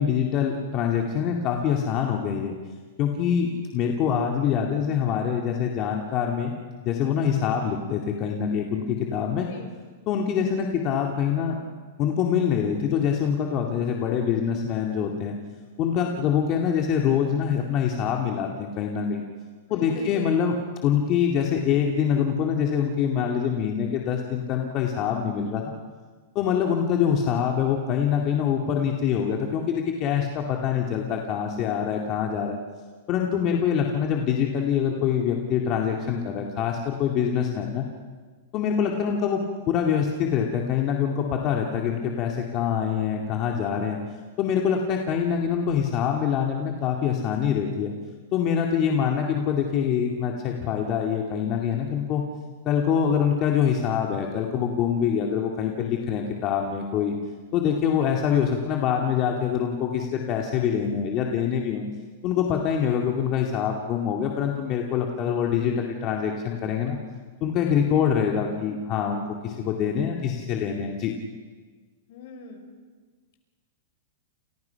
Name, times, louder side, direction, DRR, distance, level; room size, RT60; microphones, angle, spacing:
voice 1, 0.0-2.5 3.0-6.5 6.8-9.5 10.1-11.6 12.0-15.4 15.8-19.2 19.7-20.5 20.8-25.7 26.3-32.6 33.1-37.9 38.5-39.4 39.7-44.0 44.4-47.9 48.3-52.2 52.6-57.1 57.5-61.8 62.2-67.0 67.4-71.1, left 8 dB, 35° left, 1 dB, 2.3 m, -25 dB
voice 2, 9.4-9.7 19.7-20.3 67.6-68.0 72.1-72.7, left 5 dB, 60° left, 6 dB, 5.4 m, -42 dB
29.5 x 29.0 x 5.9 m, 1.4 s
supercardioid pair, 155°, 0 cm